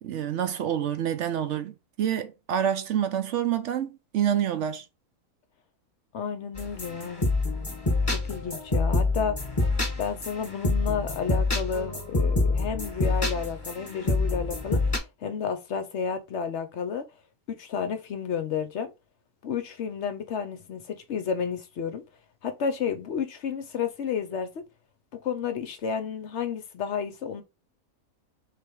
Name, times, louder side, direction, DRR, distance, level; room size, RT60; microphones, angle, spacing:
voice 1, 0.0-4.8, right 9 dB, 65° right, 0.8 m, -27 dB
voice 2, 6.1-7.3 8.1-9.5 10.0-17.1 17.5-18.9 19.4-22.0 22.4-24.6 25.2-27.4, left 6 dB, 60° left, 0.8 m, -31 dB
sound 1, 6.6-15.0, left 2 dB, 15° left, 1.3 m, -27 dB
3.5 x 3.3 x 4.5 m
omnidirectional pair, 1.6 m